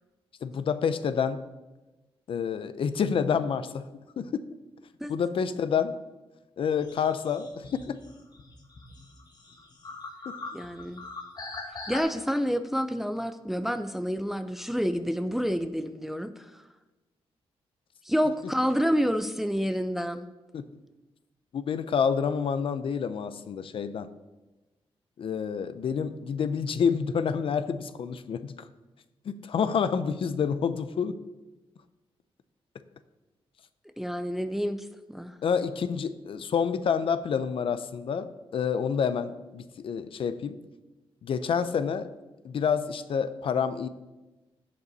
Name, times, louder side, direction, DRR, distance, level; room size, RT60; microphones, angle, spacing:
voice 1, 0.4-1.4 2.3-3.9 4.2-4.4 5.1-5.9 6.6-8.0 10.3-10.4 20.5-20.6 21.5-24.1 25.2-28.5 29.3-31.2 35.4-40.6 41.2-42.1 42.4-43.9, left 6 dB, 60° left, 12 dB, 0.6 m, -28 dB
sound 1, 6.7-12.0, left 3 dB, 40° left, 1.4 m, -42 dB
voice 2, 10.5-11.0 11.9-16.6 18.0-20.3 34.0-35.4, equal, 5° right, 10 dB, 0.4 m, -29 dB
16.0 x 5.4 x 4.1 m, 1.1 s
wide cardioid pair, 140°, 10 cm